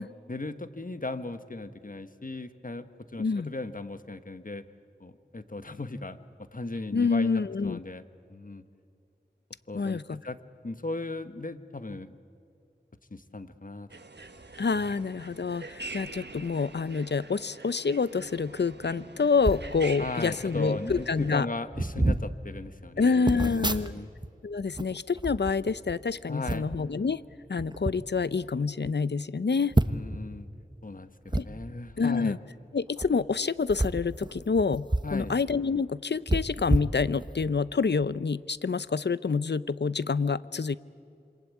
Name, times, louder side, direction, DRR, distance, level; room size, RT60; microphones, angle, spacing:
voice 1, 0.0-2.9 3.1-4.6 5.0-6.2 6.5-8.0 8.3-8.6 9.7-10.4 10.6-12.2 13.1-14.0 14.7-14.8 20.0-24.1 26.3-26.7 29.9-30.5 30.8-32.4 35.0-35.3, left 2 dB, 50° left, 11 dB, 1.4 m, -37 dB
voice 2, 3.2-3.5 6.9-7.8 9.7-10.2 14.6-21.5 23.0-23.9 24.4-27.2 27.5-29.8 31.4-31.5 32.0-32.4 32.7-40.8, left 5 dB, 80° left, 17 dB, 0.6 m, -27 dB
sound 1, 13.9-21.3, right 2 dB, 80° right, 1.5 m, -44 dB
sound 2, 19.4-19.7 20.5-20.6 20.9-21.1 21.7-22.3 23.3-24.3 24.6-26.0 26.5-26.8 27.6-28.0 28.5-28.6 28.8-28.9 29.7-30.2 31.3-31.4 32.9-33.1 33.7-35.2 35.5-35.6 36.3-37.5 38.0-38.1, right 1 dB, 25° right, 1.2 m, -29 dB
27.0 x 25.0 x 8.5 m, 2.5 s
wide cardioid pair, 40°, 17 cm